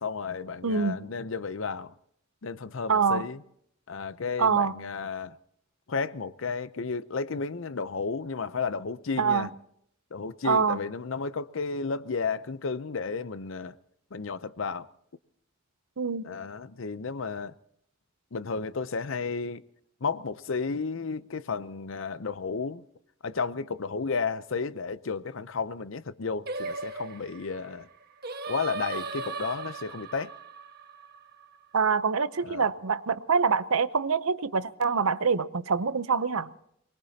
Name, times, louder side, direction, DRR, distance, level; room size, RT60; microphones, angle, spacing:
voice 1, 0.0-1.9 2.4-3.4 3.9-5.4 5.9-9.5 10.1-13.8 14.1-14.9 16.2-17.5 18.3-19.6 20.0-22.8 23.2-27.9 28.5-30.4 32.4-32.7, left 4 dB, 65° left, 0.6 m, -33 dB
voice 2, 0.6-1.0 2.9-3.2 4.4-4.7 9.2-9.5 10.4-10.8 16.0-16.3 31.7-36.5, right 5 dB, 90° right, 0.7 m, -25 dB
Singing, 26.5-31.8, right 4 dB, 50° right, 1.4 m, -37 dB
23.5 x 21.0 x 2.8 m
head